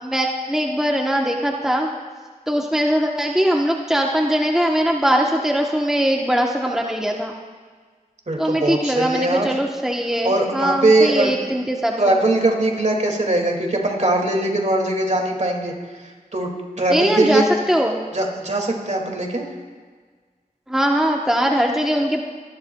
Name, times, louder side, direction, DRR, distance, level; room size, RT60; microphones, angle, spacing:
voice 1, 0.0-1.9 2.5-7.3 8.4-12.2 16.9-18.0 20.7-22.2, equal, 5° right, 0 dB, 1.0 m, -21 dB
voice 2, 8.3-9.5 10.2-11.3 12.0-15.7 16.3-16.5 16.8-17.4 18.1-19.4, right 2 dB, 50° right, 1 dB, 2.2 m, -20 dB
24.5 x 11.0 x 2.3 m, 1.5 s
cardioid pair, 40°, 15 cm